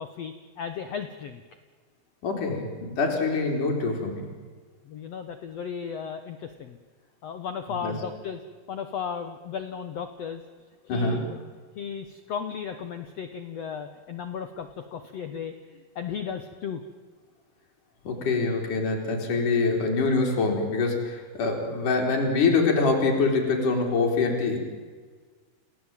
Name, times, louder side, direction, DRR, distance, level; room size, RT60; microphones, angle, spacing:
voice 1, 0.0-1.4 4.9-6.8 7.2-8.4 8.7-10.4 10.8-11.2 11.7-16.8, left 7 dB, 75° left, 8 dB, 1.5 m, -35 dB
voice 2, 2.2-4.2 7.8-7.9 10.9-11.2 18.0-24.6, left 3 dB, 50° left, 1 dB, 5.4 m, -25 dB
29.0 x 17.0 x 9.1 m, 1.5 s
omnidirectional pair, 4.7 m